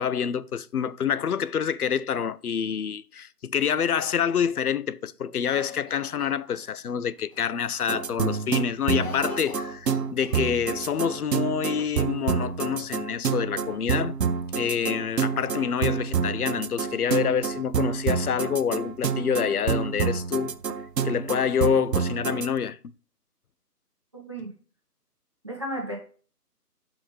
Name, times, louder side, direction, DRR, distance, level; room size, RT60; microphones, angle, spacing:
voice 1, 0.0-14.2 14.6-20.5 21.0-22.8, left 7 dB, 65° left, 0.5 m, -27 dB
Cough, 5.4-6.9 7.3-7.4 7.7-8.1 8.4-10.7 11.0-11.1 11.8-12.6, left 3 dB, 25° left, 2.3 m, -43 dB
sound 1, 7.9-22.5, right 6 dB, 90° right, 0.7 m, -28 dB
voice 2, 24.1-24.5 25.4-26.0, right 1 dB, 20° right, 0.8 m, -33 dB
6.0 x 5.7 x 3.2 m
figure-of-eight pair, 160°, 48 cm